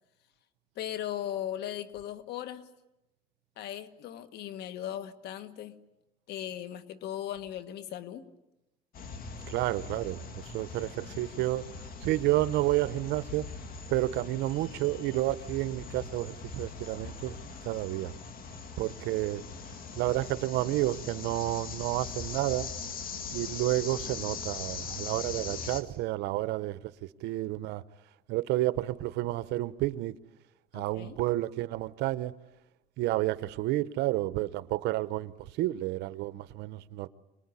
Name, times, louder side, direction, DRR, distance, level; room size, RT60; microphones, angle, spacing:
voice 1, 0.7-2.7 3.6-5.8 6.3-8.2 30.7-31.2, left 11 dB, 75° left, 1.6 m, -38 dB
sound 1, 8.9-25.8, left 5 dB, 60° left, 2.2 m, -41 dB
voice 2, 9.5-11.6 12.0-13.5 13.9-17.4 17.6-18.1 18.8-19.4 19.9-22.7 23.3-26.9 27.2-27.8 28.3-30.1 30.7-32.3 33.0-37.1, right 17 dB, 90° right, 0.9 m, -30 dB
26.5 x 20.0 x 9.8 m
cardioid pair, 110°, 17 cm